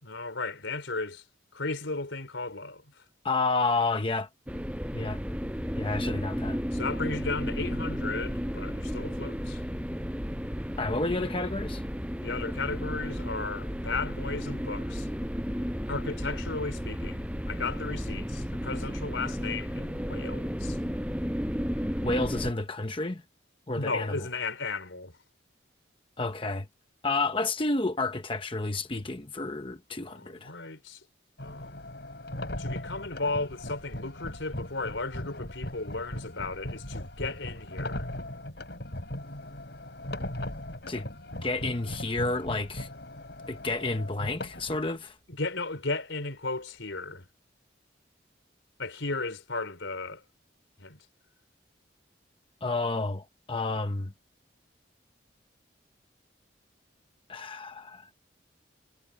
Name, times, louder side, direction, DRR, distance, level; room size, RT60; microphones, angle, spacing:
voice 1, 0.0-1.2 1.5-2.8 6.7-9.6 12.2-15.1 15.9-20.8 23.8-25.1 30.1-31.0 31.4-31.8 32.6-38.1 45.3-47.3 48.8-50.2 50.8-51.0, left 3 dB, 90° left, 4.1 m, -35 dB
voice 2, 3.2-4.3 4.9-5.2 5.8-6.6 10.8-11.8 22.0-23.2 23.7-24.3 26.2-26.7 27.0-30.5 40.9-41.1 41.4-42.9 43.5-45.2 52.6-54.1 57.3-58.1, left 3 dB, 30° left, 1.0 m, -30 dB
sound 1, 4.5-22.5, equal, 5° right, 7.6 m, -33 dB
sound 2, 31.4-44.9, left 1 dB, 65° left, 4.5 m, -39 dB
head